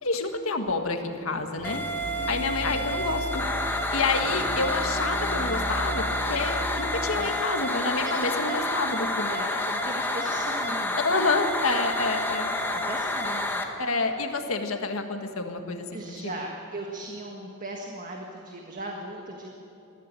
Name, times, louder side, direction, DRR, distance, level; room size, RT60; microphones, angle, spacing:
voice 1, 0.0-1.8 2.3-3.4 3.9-9.3 11.0-12.5 13.8-16.3, left 3 dB, 75° left, 5 dB, 1.7 m, -28 dB
sound 1, 1.6-13.6, left 1 dB, 10° left, 1.7 m, -29 dB
sound 2, 1.6-7.2, equal, 55° right, 3.4 m, -36 dB
voice 2, 8.9-11.0 12.6-13.6 15.9-19.5, right 1 dB, 40° right, 1 dB, 1.7 m, -38 dB
21.0 x 14.5 x 9.1 m, 2.8 s
head